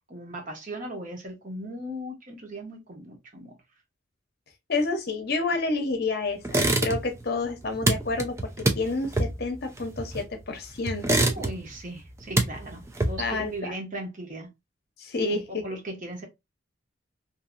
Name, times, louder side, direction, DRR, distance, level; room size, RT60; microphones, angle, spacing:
voice 1, 0.1-3.5 11.1-14.5 15.3-16.2, right 1 dB, 40° right, 0.9 m, -38 dB
voice 2, 4.7-11.3 13.2-13.7 15.0-15.8, left 3 dB, 50° left, 0.7 m, -29 dB
sound 1, 6.4-7.2 7.5-10.4 10.9-11.8 12.1-13.4, right 2 dB, 15° right, 0.3 m, -26 dB
2.7 x 2.6 x 2.4 m
head